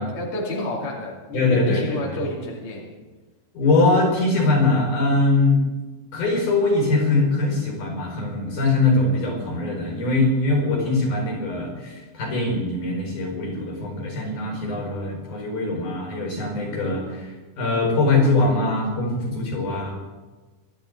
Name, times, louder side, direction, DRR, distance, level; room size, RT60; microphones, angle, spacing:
voice 1, 0.0-3.0, left 1 dB, 45° left, -4 dB, 3.3 m, -30 dB
voice 2, 1.3-2.2 3.5-5.6 6.1-19.9, left 2 dB, 80° left, 0 dB, 6.8 m, -22 dB
25.5 x 11.5 x 4.0 m, 1.2 s
omnidirectional pair, 3.5 m